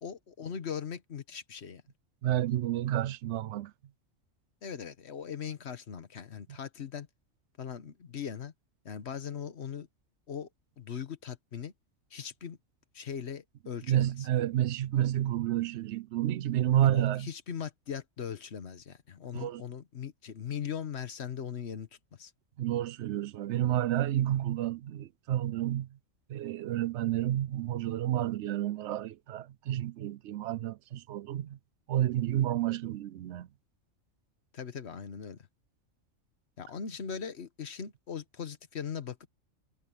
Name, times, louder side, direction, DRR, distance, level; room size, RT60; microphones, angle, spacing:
voice 1, 0.0-1.8 4.6-7.1 7.6-8.5 8.8-9.9 10.3-10.5 10.8-11.7 12.1-12.6 12.9-14.3 16.7-22.3 34.5-35.4 36.6-39.2, left 7 dB, 55° left, 1.3 m, -40 dB
voice 2, 2.2-3.7 13.9-17.3 19.3-19.6 22.6-25.9 26.3-31.6 31.9-33.5, right 12 dB, 65° right, 0.8 m, -30 dB
omnidirectional pair, 1.4 m